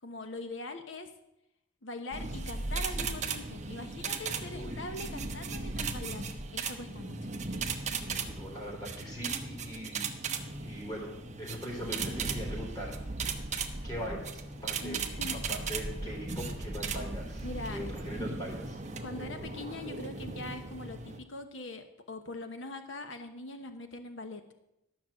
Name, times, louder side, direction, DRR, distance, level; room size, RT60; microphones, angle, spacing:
voice 1, 0.0-1.1 1.8-6.3 6.5-7.3 14.8-15.4 17.4-17.8 19.0-24.4, left 2 dB, 65° left, 7 dB, 1.0 m, -42 dB
sound 1, 2.1-21.2, right 4 dB, 35° right, 0.9 m, -37 dB
voice 2, 4.5-4.8 8.2-10.1 10.6-12.9 13.8-15.0 15.5-18.8, equal, 20° left, -2 dB, 3.6 m, -41 dB
13.0 x 6.1 x 7.5 m, 0.86 s
head